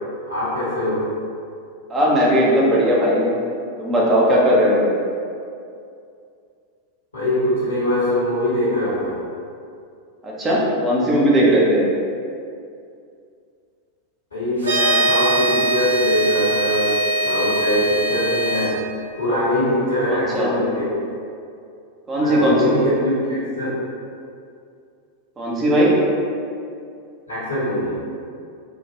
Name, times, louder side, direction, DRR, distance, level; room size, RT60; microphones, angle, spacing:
voice 1, 0.2-1.1 7.1-9.2 14.3-18.8 19.1-20.9 22.2-23.7 27.3-28.0, left 1 dB, 75° left, -13 dB, 1.2 m, -22 dB
voice 2, 1.9-3.3 3.8-4.9 10.2-11.8 20.1-20.5 22.1-22.8 25.4-26.0, equal, 20° right, -5 dB, 0.8 m, -17 dB
sound 1, 14.6-18.7, right 2 dB, 70° right, 0.6 m, -21 dB
3.7 x 2.4 x 2.8 m, 2.4 s
figure-of-eight pair, 90°, 0 cm